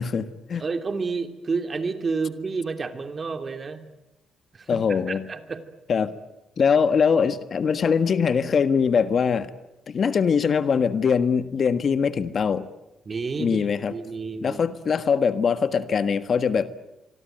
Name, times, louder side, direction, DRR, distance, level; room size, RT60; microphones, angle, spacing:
voice 1, 0.0-0.6 4.7-5.3 5.9-6.1 6.6-9.5 9.9-12.7 13.4-13.9 14.4-16.7, left 6 dB, 50° left, 12 dB, 1.5 m, -22 dB
voice 2, 0.6-3.8 4.5-5.6 13.1-14.6, right 4 dB, 35° right, 8 dB, 2.8 m, -30 dB
25.5 x 24.0 x 9.1 m, 0.94 s
cardioid pair, 90°, 0 cm